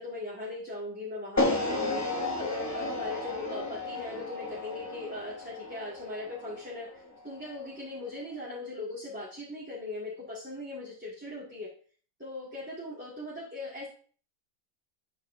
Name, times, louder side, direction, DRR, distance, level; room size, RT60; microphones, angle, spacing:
voice 1, 0.0-2.0 2.4-11.7 12.2-13.9, left 2 dB, 10° right, -9 dB, 1.9 m, -39 dB
sound 1, 1.4-7.5, left 2 dB, 15° left, 0.6 m, -33 dB
8.3 x 6.2 x 2.6 m, 0.44 s
omnidirectional pair, 1.4 m